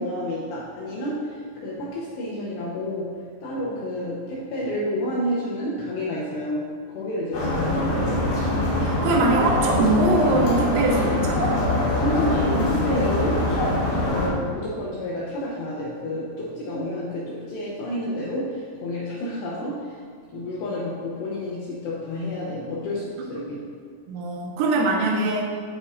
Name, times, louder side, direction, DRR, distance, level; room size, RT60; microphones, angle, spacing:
voice 1, 0.0-8.2 12.0-13.4 14.1-20.0 20.3-23.6, left 1 dB, 80° left, -6 dB, 2.5 m, -29 dB
sound 1, 7.3-14.3, left 1 dB, 55° left, 2.7 m, -23 dB
voice 2, 8.8-11.7 23.2-23.3 24.1-25.5, right 2 dB, 80° right, 0 dB, 3.4 m, -22 dB
8.5 x 7.7 x 2.5 m, 2.1 s
omnidirectional pair, 5.9 m